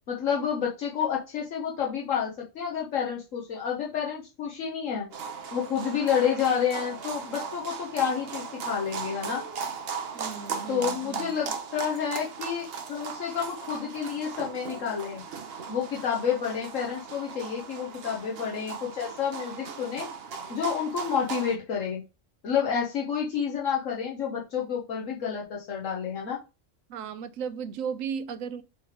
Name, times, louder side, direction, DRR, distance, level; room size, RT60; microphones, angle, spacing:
voice 1, 0.1-5.1 5.5-9.4 10.7-15.2 15.7-20.1 20.5-22.0 22.4-26.4, left 7 dB, 75° left, 1.4 m, -29 dB
sound 1, 5.1-21.6, right 6 dB, 55° right, 0.9 m, -37 dB
voice 2, 10.1-11.4 26.9-28.6, right 7 dB, 85° right, 1.1 m, -35 dB
7.0 x 3.3 x 4.9 m
omnidirectional pair, 1.3 m